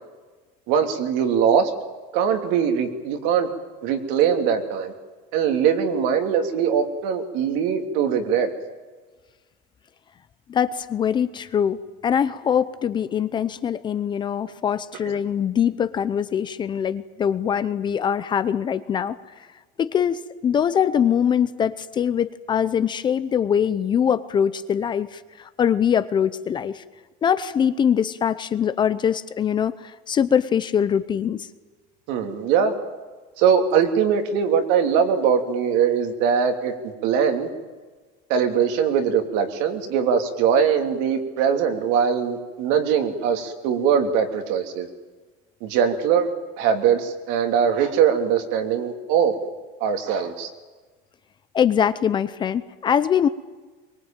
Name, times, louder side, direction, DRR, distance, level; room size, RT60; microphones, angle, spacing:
voice 1, 0.7-1.7 2.1-3.5 3.8-4.9 5.3-8.5 32.1-32.7 33.4-37.5 38.3-44.9 45.6-46.3 46.6-49.3 49.8-50.5, right 7 dB, 65° right, 6 dB, 3.1 m, -21 dB
voice 2, 10.5-19.2 19.8-26.8 27.2-31.5 51.5-53.3, left 8 dB, 25° left, 13 dB, 0.7 m, -23 dB
23.0 x 22.0 x 9.0 m, 1.3 s
cardioid pair, 170°, 20 cm